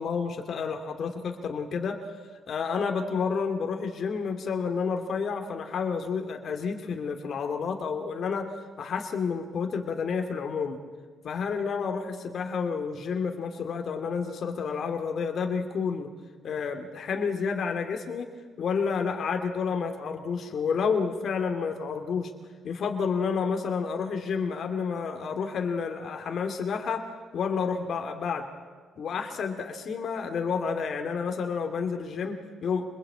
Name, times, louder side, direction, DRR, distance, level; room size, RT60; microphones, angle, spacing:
voice 1, 0.0-2.0 2.5-8.5 8.8-10.8 11.2-16.1 16.4-18.3 18.6-22.3 22.6-27.0 27.3-28.5 29.0-32.8, left 5 dB, 60° left, 5 dB, 2.5 m, -30 dB
25.5 x 21.5 x 8.7 m, 1.5 s
cardioid pair, 90°, 0 cm